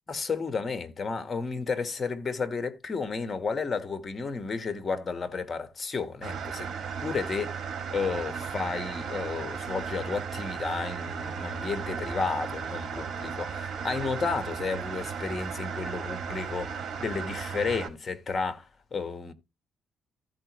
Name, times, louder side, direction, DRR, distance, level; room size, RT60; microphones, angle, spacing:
voice 1, 0.1-6.7 7.0-7.6 7.9-19.3, left 4 dB, 35° left, 1.3 m, -32 dB
sound 1, 6.2-17.9, right 6 dB, 55° right, 2.1 m, -35 dB
14.5 x 4.8 x 3.1 m
cardioid pair, 90°, 0 cm